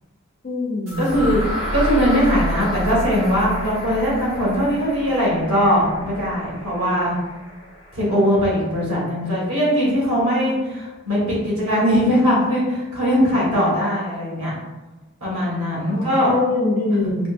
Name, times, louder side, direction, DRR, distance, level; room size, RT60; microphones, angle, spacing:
voice 1, 0.4-1.2 15.9-17.3, left 2 dB, 40° left, -2 dB, 0.6 m, -23 dB
sound 1, 0.9-8.8, equal, 65° right, 1.3 m, -30 dB
voice 2, 1.0-1.4 1.7-7.1 7.9-14.5 15.2-16.3, equal, 85° right, -6 dB, 1.4 m, -20 dB
4.3 x 2.0 x 2.5 m, 1.1 s
head